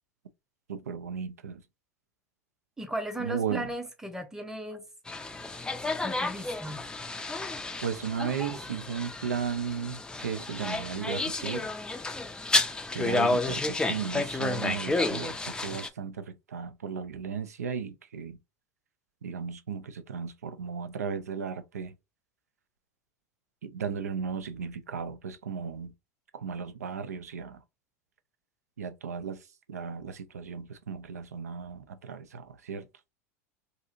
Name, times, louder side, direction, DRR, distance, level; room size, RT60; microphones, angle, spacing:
voice 1, 0.7-1.6 3.2-3.7 7.8-11.7 12.9-18.4 19.2-21.9 23.6-25.9 26.3-27.6 28.8-29.4 29.7-32.9, right 7 dB, 85° right, 0.4 m, -35 dB
voice 2, 2.8-4.8 6.0-6.8, right 1 dB, 5° right, 0.8 m, -36 dB
sound 1, 5.1-15.9, left 2 dB, 10° left, 0.4 m, -31 dB
2.7 x 2.6 x 2.5 m
hypercardioid pair, 85°, 8 cm